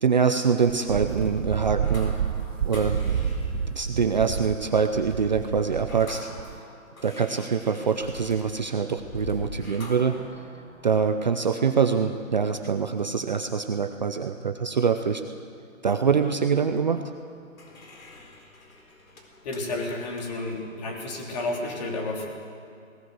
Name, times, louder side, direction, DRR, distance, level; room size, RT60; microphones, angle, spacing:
voice 1, 0.0-2.2 2.6-3.0 3.7-6.3 7.0-10.1 10.8-15.2 15.8-17.1, right 6 dB, 35° right, 7 dB, 0.6 m, -24 dB
Wind, 0.7-6.6, right 8 dB, 65° right, 0.8 m, -30 dB
sound 1, 0.9-13.3 17.0-20.7, left 2 dB, 75° left, 4.4 m, -44 dB
voice 2, 19.4-22.3, left 2 dB, 30° left, 0 dB, 3.4 m, -31 dB
18.5 x 18.5 x 8.0 m, 2.3 s
hypercardioid pair, 165°, 40 cm